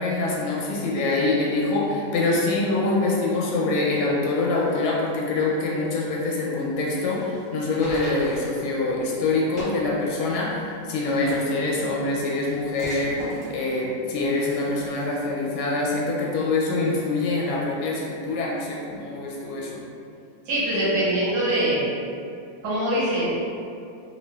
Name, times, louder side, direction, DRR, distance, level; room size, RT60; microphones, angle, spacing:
voice 1, 0.0-19.8, left 2 dB, 90° left, -4 dB, 1.4 m, -25 dB
Book Manipulations - Page turns open close, 6.8-15.1, left 1 dB, 25° left, 0.7 m, -40 dB
voice 2, 20.5-21.9 22.6-23.4, right 1 dB, 85° right, -8 dB, 1.7 m, -23 dB
3.2 x 2.6 x 2.2 m, 2.5 s
omnidirectional pair, 2.2 m